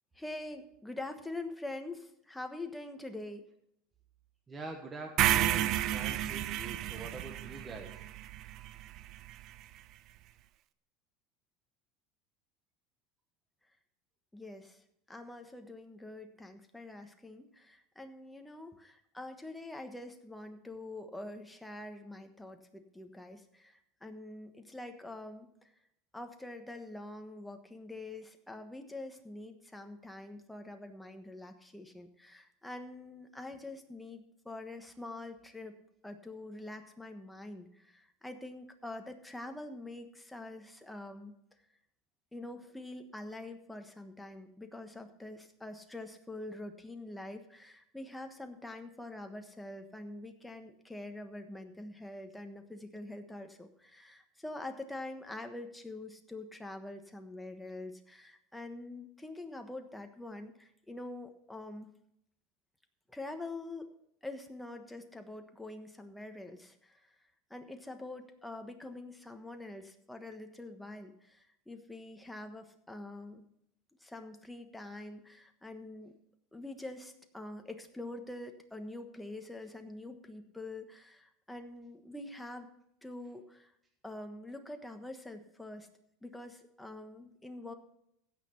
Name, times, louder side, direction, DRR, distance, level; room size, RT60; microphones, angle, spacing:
voice 1, 0.1-3.4 14.3-14.8 15.1-25.7 26.1-35.8 36.0-41.4 42.3-61.9 63.1-63.9 64.2-67.1 67.5-73.5 74.0-76.1 76.5-82.7 83.0-83.7 84.0-85.9 86.2-87.7, left 2 dB, 5° left, 5 dB, 1.3 m, -45 dB
voice 2, 4.5-8.0, right 3 dB, 15° right, 2 dB, 1.3 m, -44 dB
sound 1, 5.2-9.3, right 13 dB, 50° right, 0.5 m, -31 dB
16.0 x 6.0 x 5.8 m, 0.75 s
supercardioid pair, 130°, 0 cm